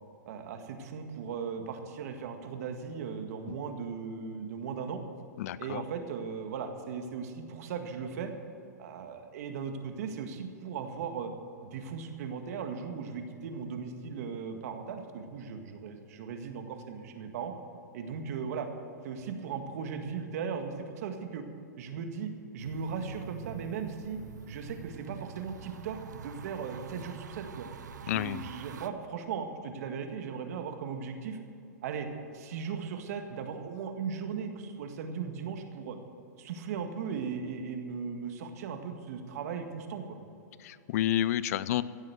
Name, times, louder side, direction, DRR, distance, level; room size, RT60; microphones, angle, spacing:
voice 1, 0.3-5.0 5.6-8.3 8.8-11.3 11.6-17.5 17.9-18.7 19.0-21.5 21.8-24.2 24.5-27.7 28.0-31.4 31.8-32.1 32.3-36.0 36.4-40.2, right 6 dB, 60° right, 6 dB, 1.8 m, -37 dB
voice 2, 5.4-5.8 28.1-28.5 40.6-41.8, left 12 dB, 55° left, 18 dB, 0.5 m, -30 dB
sound 1, 22.6-28.9, right 6 dB, 80° right, 0.8 m, -45 dB
16.0 x 7.6 x 7.9 m, 2.6 s
hypercardioid pair, 120°, 9 cm